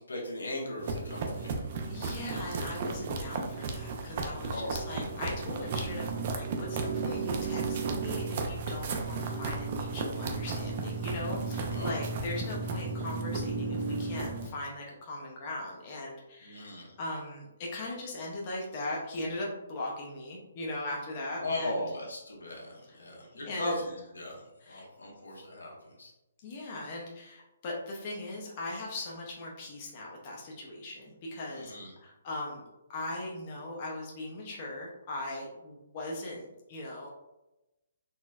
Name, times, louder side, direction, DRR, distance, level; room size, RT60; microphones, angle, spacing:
voice 1, 0.0-1.8 4.4-4.9 11.6-12.0 16.4-16.9 21.4-25.7 26.0-26.1 31.5-31.9, left 1 dB, 85° left, -1 dB, 0.9 m, -38 dB
sound 1, 0.8-14.5, right 4 dB, 45° right, 0.4 m, -34 dB
voice 2, 1.9-16.7 17.0-21.7 22.9-23.0 23.4-23.7 24.6-24.8 26.4-31.7 32.0-32.6 32.9-37.1, left 2 dB, 40° left, -2 dB, 0.6 m, -39 dB
4.1 x 2.0 x 2.3 m, 0.95 s
figure-of-eight pair, 140°, 0 cm